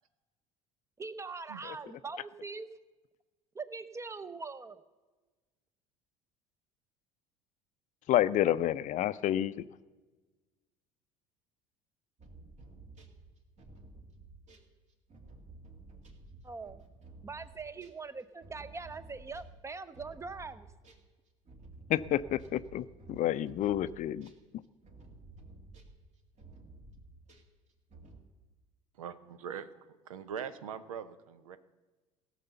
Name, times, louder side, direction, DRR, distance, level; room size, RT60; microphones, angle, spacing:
voice 1, 1.0-2.7 3.5-4.8 16.4-16.8 17.2-20.7, right 4 dB, 15° right, 14 dB, 0.7 m, -42 dB
voice 2, 8.1-9.7 21.9-24.3, left 12 dB, 45° left, 16 dB, 0.5 m, -29 dB
sound 1, 12.2-21.1 21.5-28.2, right 3 dB, 40° right, 2.1 m, -53 dB
voice 3, 29.0-29.7 30.1-31.6, right 8 dB, 85° right, 13 dB, 0.7 m, -41 dB
16.5 x 6.7 x 6.8 m, 1.2 s
hypercardioid pair, 70°, 17 cm